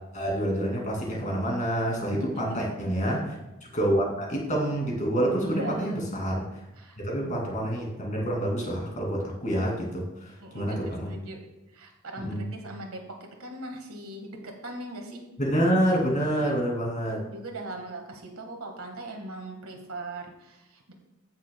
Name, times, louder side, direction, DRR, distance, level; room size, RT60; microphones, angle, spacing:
voice 1, 0.1-3.3 3.6-6.6 7.0-11.2 12.2-12.5 15.4-17.2, right 1 dB, 35° left, -1 dB, 2.5 m, -27 dB
voice 2, 2.1-2.7 5.4-6.0 6.8-7.0 10.4-11.4 11.7-13.0 13.4-15.2 17.3-20.9, right 2 dB, 80° right, 3 dB, 1.6 m, -39 dB
16.0 x 6.3 x 2.2 m, 1.0 s
head